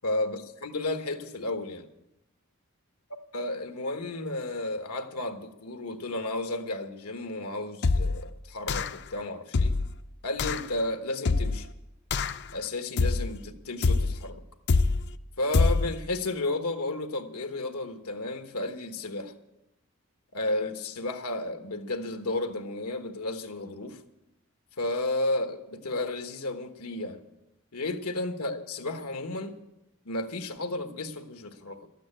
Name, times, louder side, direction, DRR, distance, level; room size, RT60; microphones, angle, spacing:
voice 1, 0.0-1.9 3.3-9.8 10.2-11.7 12.5-14.4 15.4-19.3 20.3-24.0 24.8-27.2 27.7-29.5 30.0-31.9, left 2 dB, 90° left, 6 dB, 1.3 m, -33 dB
sound 1, 7.8-8.3 8.7-9.1 9.5-10.0 10.4-10.7 11.3-11.7 12.1-12.5 13.0-13.4 13.8-14.2 14.7-15.1 15.5-16.0, left 3 dB, 50° left, 0.5 m, -25 dB
13.0 x 9.0 x 8.7 m, 0.89 s
head